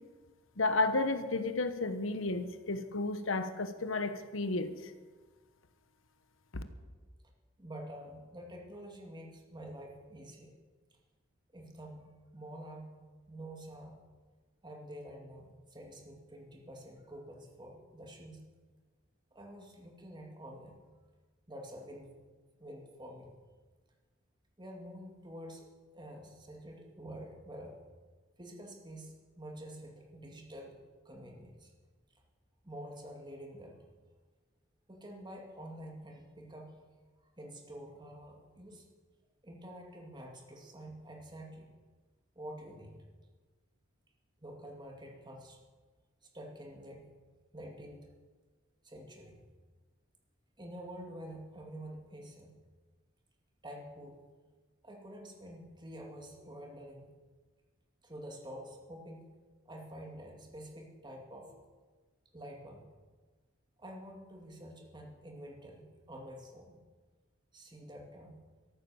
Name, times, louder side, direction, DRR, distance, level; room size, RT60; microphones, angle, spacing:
voice 1, 0.6-4.9 6.5-6.6, left 2 dB, 75° left, 10 dB, 1.1 m, -32 dB
voice 2, 7.6-10.5 11.5-12.9 13.3-14.0 14.6-18.5 19.3-20.8 21.5-22.2 22.6-23.3 24.6-25.7 25.9-27.8 28.4-30.8 31.0-31.7 32.6-33.8 34.9-36.7 37.4-38.9 39.4-41.7 42.4-43.0 44.4-45.6 46.2-47.1 47.5-48.0 48.8-49.4 50.6-52.5 53.6-54.2 54.8-57.1 58.0-59.2 59.7-61.6 62.3-62.8 63.8-66.8 67.5-68.4, equal, 25° right, 1 dB, 2.4 m, -48 dB
13.5 x 12.0 x 7.1 m, 1.4 s
head